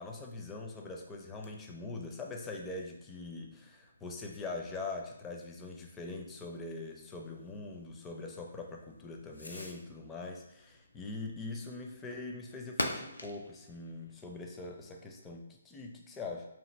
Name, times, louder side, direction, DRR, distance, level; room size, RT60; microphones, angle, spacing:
voice 1, 0.0-16.5, left 3 dB, 15° left, 1 dB, 0.4 m, -42 dB
Fireworks, 0.7-15.3, left 1 dB, 85° left, 0.4 m, -47 dB
2.9 x 2.4 x 3.2 m, 0.85 s
figure-of-eight pair, 135°, 0 cm